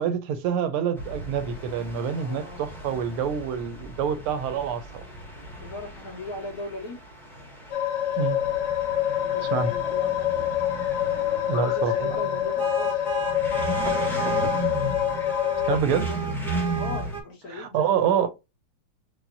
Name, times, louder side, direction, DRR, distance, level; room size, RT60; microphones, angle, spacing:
voice 1, 0.0-5.1 8.2-8.4 9.5-9.7 11.5-12.2 15.7-16.1 17.5-18.3, right 7 dB, 85° right, 1.6 m, -26 dB
sound 1, 1.0-17.2, right 3 dB, ahead, 0.7 m, -34 dB
voice 2, 2.2-2.6 5.6-7.0 9.1-10.3 11.1-13.1 15.8-16.3 16.7-18.3, left 2 dB, 50° left, 1.7 m, -39 dB
sound 2, 7.7-15.8, left 11 dB, 70° left, 1.0 m, -26 dB
4.9 x 2.8 x 2.6 m
omnidirectional pair, 2.4 m